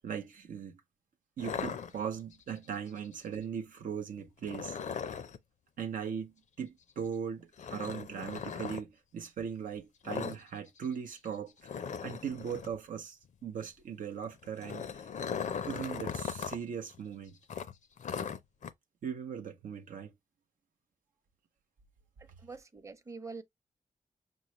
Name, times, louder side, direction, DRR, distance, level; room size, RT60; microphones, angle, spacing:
voice 1, 0.0-0.8 1.4-4.8 5.8-11.7 12.0-15.1 15.7-17.4 19.0-20.1, right 7 dB, 85° right, 0.6 m, -39 dB
sound 1, 1.4-2.4 4.4-5.4 7.6-8.8 10.1-10.4 10.7-10.9 11.2-11.3 11.6-12.8 14.3-16.6 16.9-17.0 17.5-18.7, left 7 dB, 65° left, 0.5 m, -38 dB
voice 2, 22.4-23.4, right 4 dB, 20° right, 0.7 m, -44 dB
5.3 x 2.0 x 2.9 m
cardioid pair, 70°, 14 cm